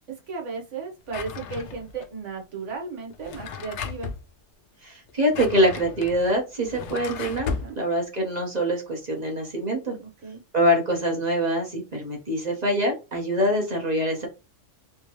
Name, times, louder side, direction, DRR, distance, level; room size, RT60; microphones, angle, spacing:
voice 1, 0.1-4.1 7.5-7.8 10.0-10.4, right 5 dB, 70° right, 1 dB, 1.4 m, -35 dB
Drawer open or close, 1.1-2.1 3.1-4.2 5.1-7.7, left 6 dB, 70° left, 0.9 m, -35 dB
voice 2, 4.8-7.5 7.8-10.0 10.5-14.3, equal, 35° right, 1 dB, 1.1 m, -24 dB
3.5 x 2.9 x 3.0 m, 0.28 s
omnidirectional pair, 1.3 m